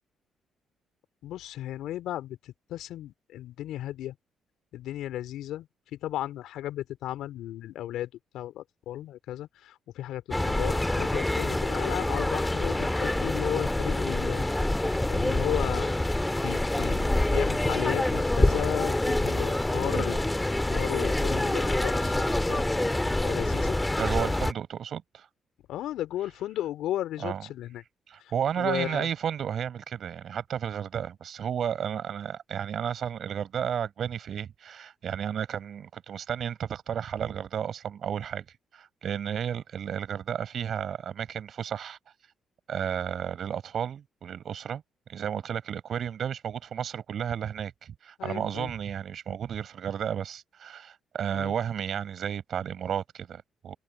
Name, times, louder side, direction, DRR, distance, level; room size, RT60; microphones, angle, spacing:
voice 1, 1.2-4.2 4.7-14.7 15.1-16.0 16.4-20.3 20.7-22.6 23.2-23.8 25.7-27.8 28.2-29.1 48.2-48.7 51.3-51.5, left 13 dB, 75° left, 3.4 m, -35 dB
sound 1, 10.3-24.5, left 1 dB, 15° left, 2.1 m, -26 dB
voice 2, 23.9-25.3 27.2-27.4 28.1-38.5 38.7-42.0 42.7-44.8 45.1-53.8, right 8 dB, 60° right, 6.5 m, -32 dB
hypercardioid pair, 45°, 0 cm